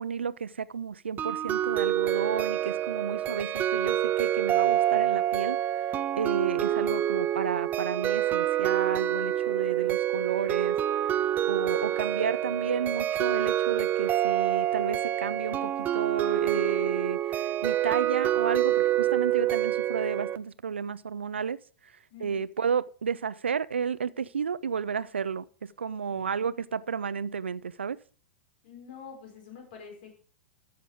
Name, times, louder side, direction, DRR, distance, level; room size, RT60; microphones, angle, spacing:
voice 1, 0.0-5.6 6.2-10.8 11.5-21.9 22.2-28.0, right 6 dB, 80° right, 0.5 m, -32 dB
sound 1, 1.2-20.4, right 12 dB, 25° right, 0.6 m, -27 dB
voice 2, 22.1-22.4 26.1-26.3 28.6-30.1, left 6 dB, 60° left, 4.7 m, -47 dB
13.5 x 6.7 x 5.0 m
hypercardioid pair, 100°, 6 cm